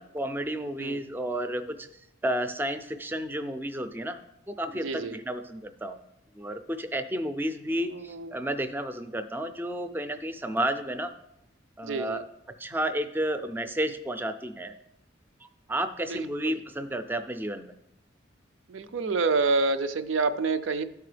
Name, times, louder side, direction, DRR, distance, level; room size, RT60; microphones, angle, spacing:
voice 1, 0.0-1.9 2.2-4.2 4.5-6.0 6.4-11.1 11.8-12.3 12.6-14.7 15.7-17.7, right 1 dB, 10° right, 9 dB, 0.4 m, -31 dB
voice 2, 4.8-5.2 7.9-8.3 11.8-12.2 16.1-16.6 18.7-20.8, right 4 dB, 80° right, 11 dB, 0.5 m, -28 dB
13.0 x 4.6 x 3.3 m, 0.80 s
head